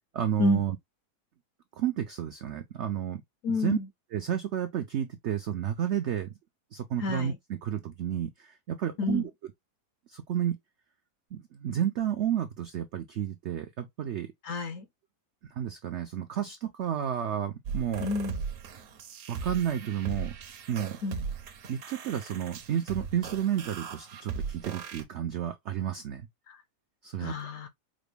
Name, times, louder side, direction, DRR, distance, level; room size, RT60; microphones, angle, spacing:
voice 1, 0.1-0.8 1.8-3.2 3.5-3.8 4.1-6.3 6.7-9.3 10.1-10.6 11.3-14.3 15.5-18.1 19.3-20.3 20.7-21.0 21.7-26.3 27.0-27.3, right 10 dB, 75° right, 0.6 m, -31 dB
voice 2, 3.4-3.9 7.0-7.4 9.0-9.3 14.4-14.8 18.0-18.4 21.0-21.2 26.5-26.6 27.2-27.7, left 3 dB, 70° left, 0.8 m, -30 dB
sound 1, 17.7-25.0, right 6 dB, 60° right, 0.9 m, -38 dB
5.0 x 2.1 x 3.3 m
omnidirectional pair, 1.7 m